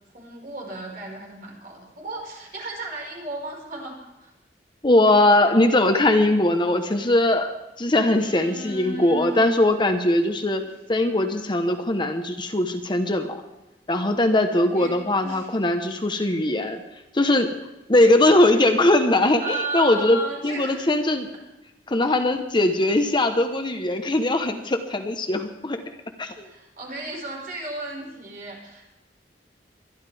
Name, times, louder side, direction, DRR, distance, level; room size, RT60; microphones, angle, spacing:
voice 1, 0.1-4.3 8.2-9.5 14.7-15.5 16.5-16.6 19.4-20.9 26.4-28.9, right 2 dB, 55° right, -1 dB, 5.2 m, -35 dB
voice 2, 4.8-13.4 13.9-16.8 17.1-17.5 17.9-21.3 21.9-25.8 26.2-26.5, left 1 dB, 25° left, 6 dB, 1.0 m, -20 dB
24.0 x 11.5 x 3.5 m, 0.98 s
head